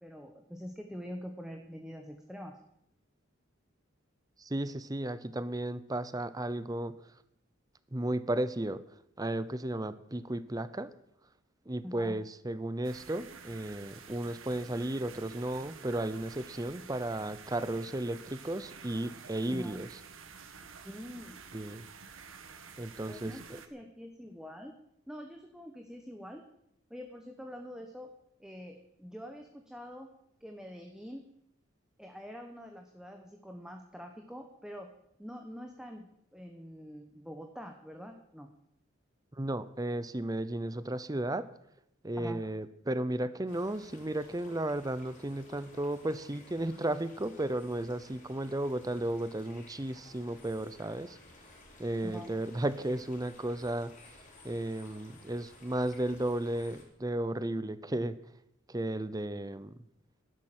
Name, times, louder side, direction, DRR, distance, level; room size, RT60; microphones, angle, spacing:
voice 1, 0.0-2.6 11.8-12.2 19.5-19.8 20.8-21.4 23.1-24.8 25.1-26.4 26.9-28.1 28.4-30.1 30.4-31.3 32.0-34.9 35.2-38.5 42.2-42.4 52.0-52.3, equal, 5° right, 3 dB, 1.1 m, -45 dB
voice 2, 4.4-7.0 7.9-8.8 9.2-10.9 11.7-19.9 21.5-21.8 22.8-23.3 39.3-41.5 42.0-51.2 51.8-53.9 54.4-58.2 58.7-59.7, right 1 dB, 20° right, 14 dB, 0.7 m, -34 dB
sound 1, 12.8-23.7, right 6 dB, 80° right, 1.4 m, -50 dB
sound 2, 43.5-56.8, left 2 dB, 40° left, 4.5 m, -56 dB
12.0 x 11.0 x 7.6 m, 0.76 s
head